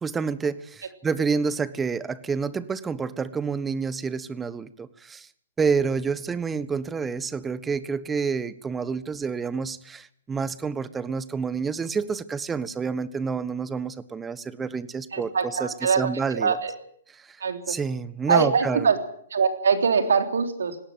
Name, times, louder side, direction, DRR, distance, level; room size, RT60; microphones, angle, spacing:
voice 1, 0.0-5.3 5.6-15.3 15.6-16.6 17.2-17.4 17.7-18.9, right 5 dB, 15° right, 16 dB, 1.3 m, -28 dB
voice 2, 15.1-16.7 17.4-17.8 18.3-19.0 19.3-20.8, right 5 dB, 70° right, 7 dB, 3.4 m, -23 dB
19.0 x 17.0 x 9.2 m, 0.64 s
figure-of-eight pair, 115°, 0 cm